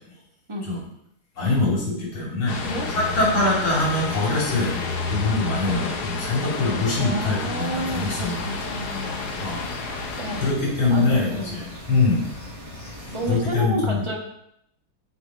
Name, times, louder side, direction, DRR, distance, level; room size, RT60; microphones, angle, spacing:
voice 1, 1.4-4.8 5.1-8.3 9.4-10.1 10.4-12.3 13.1-14.1, left 3 dB, 80° left, -5 dB, 4.1 m, -24 dB
sound 1, 2.5-10.5, left 4 dB, 60° left, 1.4 m, -30 dB
voice 2, 2.6-2.9 5.6-5.9 7.0-9.2 10.2-10.5 10.9-11.5 13.1-14.2, right 1 dB, 15° right, -1 dB, 1.3 m, -31 dB
sound 2, 7.7-13.4, left 1 dB, 30° left, 4.0 m, -39 dB
7.2 x 7.0 x 4.6 m, 0.76 s
omnidirectional pair, 2.2 m